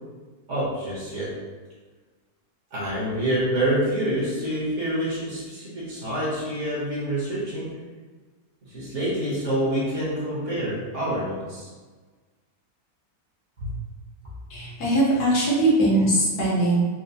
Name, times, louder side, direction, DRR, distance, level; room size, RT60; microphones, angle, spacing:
voice 1, 0.5-1.3 2.7-7.8 8.7-11.7 13.6-13.7, right 1 dB, 55° right, -7 dB, 1.4 m, -27 dB
voice 2, 14.5-16.8, right 1 dB, 80° left, -6 dB, 1.5 m, -21 dB
4.3 x 2.0 x 2.6 m, 1.4 s
omnidirectional pair, 1.6 m